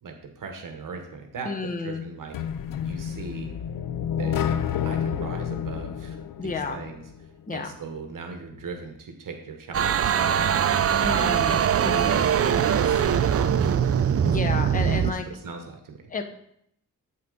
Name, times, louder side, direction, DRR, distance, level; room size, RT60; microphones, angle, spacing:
voice 1, 0.0-2.4 2.8-3.5 4.2-4.4 4.8-6.2 6.4-7.0 7.5-10.7 11.2-12.9 13.3-13.8 14.7-16.0, right 4 dB, 65° right, 4 dB, 1.1 m, -39 dB
voice 2, 1.5-2.0 6.4-6.8 7.5-7.7 11.0-12.2 12.9-13.0 14.3-15.3 16.1-16.2, left 4 dB, 25° left, 6 dB, 0.7 m, -31 dB
sound 1, 2.3-7.3, left 8 dB, 70° left, 0.5 m, -29 dB
sound 2, 9.7-15.1, right 8 dB, 45° right, 0.4 m, -22 dB
8.2 x 5.8 x 3.8 m, 0.72 s
wide cardioid pair, 120°, 34 cm